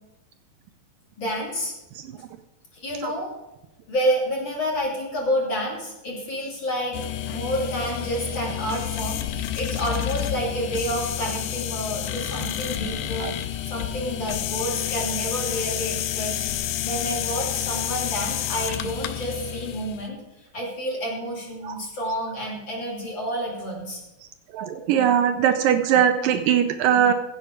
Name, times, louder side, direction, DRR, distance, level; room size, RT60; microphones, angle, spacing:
voice 1, 1.2-1.7 2.8-3.3 3.9-13.3 13.6-20.2 20.5-24.0, equal, 35° left, -3 dB, 3.0 m, -29 dB
sound 1, 6.9-20.1, left 11 dB, 80° left, 2.4 m, -29 dB
voice 2, 24.5-27.1, right 9 dB, 80° right, 8 dB, 2.2 m, -21 dB
15.5 x 7.9 x 4.7 m, 0.95 s
omnidirectional pair, 4.3 m